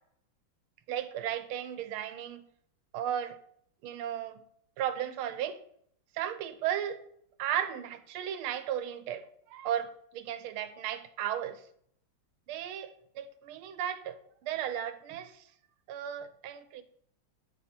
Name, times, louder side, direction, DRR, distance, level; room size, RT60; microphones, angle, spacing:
voice 1, 0.9-2.4 2.9-3.4 3.8-4.4 4.8-5.6 6.1-7.0 7.4-11.6 12.5-15.4 15.9-16.8, right 10 dB, 85° right, 1.6 m, -35 dB
9.3 x 4.9 x 4.3 m
omnidirectional pair, 2.3 m